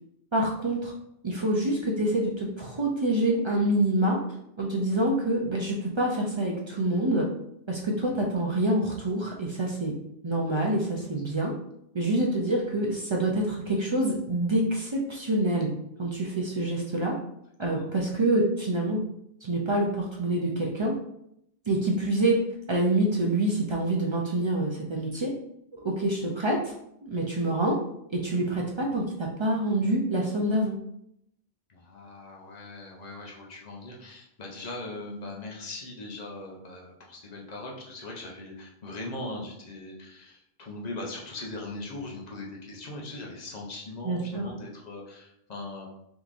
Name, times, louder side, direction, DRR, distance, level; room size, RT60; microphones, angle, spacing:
voice 1, 0.3-0.9 1.2-4.2 4.6-7.3 7.7-9.9 10.2-11.5 11.9-15.7 16.0-17.1 17.6-19.0 19.4-20.9 21.7-22.4 22.7-25.3 25.8-26.7 27.0-27.8 28.1-30.8 44.0-44.5, right 1 dB, 50° right, -2 dB, 0.3 m, -26 dB
voice 2, 31.7-45.9, left 2 dB, 45° left, -2 dB, 0.8 m, -40 dB
3.6 x 2.9 x 2.4 m, 0.77 s
omnidirectional pair, 1.1 m